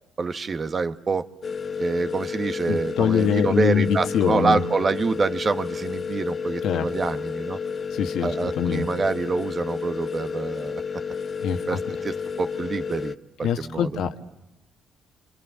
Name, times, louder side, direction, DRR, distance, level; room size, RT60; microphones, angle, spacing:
voice 1, 0.2-1.3 1.8-7.6 8.2-10.8 11.7-13.9, right 4 dB, 40° right, 9 dB, 1.4 m, -26 dB
Content warning, 1.4-13.2, left 6 dB, 45° left, 1.1 m, -31 dB
voice 2, 2.7-4.6 6.6-6.9 7.9-8.8 11.4-11.8 13.4-14.2, left 8 dB, 80° left, 6 dB, 1.6 m, -24 dB
28.0 x 26.0 x 7.6 m, 0.97 s
cardioid pair, 90°, 0 cm